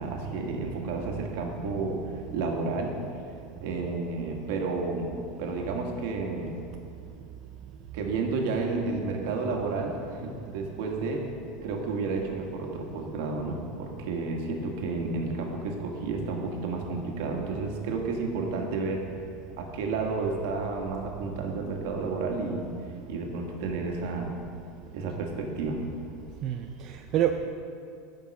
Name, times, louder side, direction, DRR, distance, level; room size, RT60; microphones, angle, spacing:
voice 1, 0.0-2.0 2.3-2.9 3.6-5.1 5.4-6.5 7.9-11.2 11.6-19.0 19.6-22.7 23.1-24.3 24.9-25.8, right 3 dB, 65° right, 1 dB, 1.4 m, -31 dB
voice 2, 26.4-27.5, right 10 dB, 35° right, 5 dB, 0.3 m, -28 dB
9.2 x 5.4 x 6.4 m, 2.4 s
supercardioid pair, 160°, 0 cm